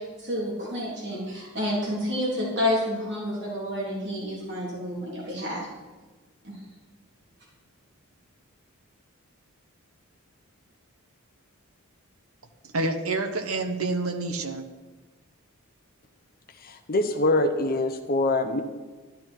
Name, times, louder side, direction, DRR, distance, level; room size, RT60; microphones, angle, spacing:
voice 1, 0.0-5.7 6.4-6.6, left 1 dB, 55° right, -5 dB, 3.6 m, -29 dB
voice 2, 12.6-14.6, right 2 dB, 80° right, 6 dB, 1.1 m, -28 dB
voice 3, 16.6-18.6, left 2 dB, 45° left, 7 dB, 0.9 m, -24 dB
12.5 x 11.5 x 4.6 m, 1.3 s
head